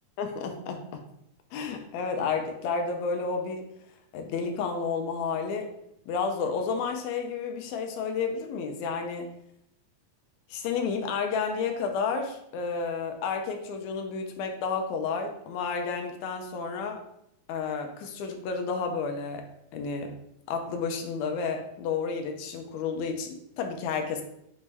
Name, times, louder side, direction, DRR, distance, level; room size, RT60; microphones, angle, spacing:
voice 1, 0.2-1.0 1.5-3.6 4.1-5.7 6.1-9.3 10.5-17.0 17.5-19.5 19.7-20.1 20.5-24.2, left 5 dB, 80° left, 4 dB, 1.6 m, -31 dB
5.9 x 2.1 x 3.4 m, 0.78 s
omnidirectional pair, 3.7 m